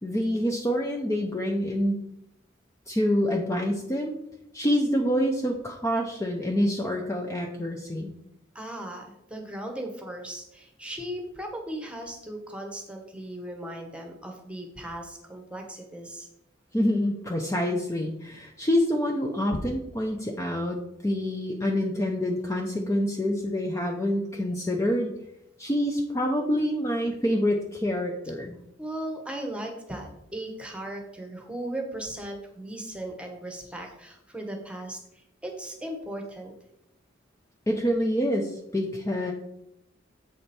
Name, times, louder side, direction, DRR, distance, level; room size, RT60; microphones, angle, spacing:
voice 1, 0.0-2.0 2.9-4.2 4.5-8.1 16.7-20.8 21.0-25.1 25.6-28.5 37.7-39.3, equal, 15° left, 1 dB, 0.7 m, -26 dB
voice 2, 8.5-16.3 28.8-35.0 35.4-36.5, right 1 dB, 5° right, 3 dB, 1.2 m, -37 dB
7.7 x 5.0 x 4.3 m, 0.80 s
head